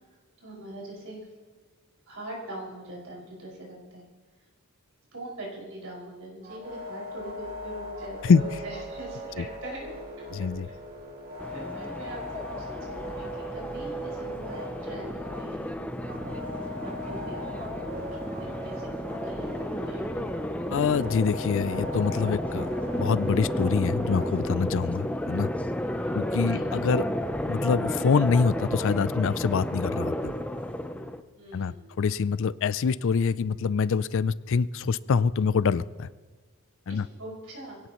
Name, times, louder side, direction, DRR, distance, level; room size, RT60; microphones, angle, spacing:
voice 1, 0.4-1.2 2.1-4.0 5.1-9.9 10.7-10.8 11.5-15.7 15.9-18.0 18.4-20.0 25.9-26.6 31.3-31.9 36.9-37.8, right 1 dB, 65° right, -4 dB, 5.8 m, -42 dB
sound 1, 6.4-24.7, equal, 45° right, 2.4 m, -39 dB
voice 2, 10.3-10.7 20.7-25.5 26.1-27.1 27.5-30.3 31.5-36.1 36.9-37.1, left 5 dB, 60° left, 18 dB, 0.4 m, -25 dB
sound 2, 11.4-31.2, left 1 dB, 5° left, 0.6 m, -32 dB
23.0 x 17.0 x 3.1 m, 1.4 s
head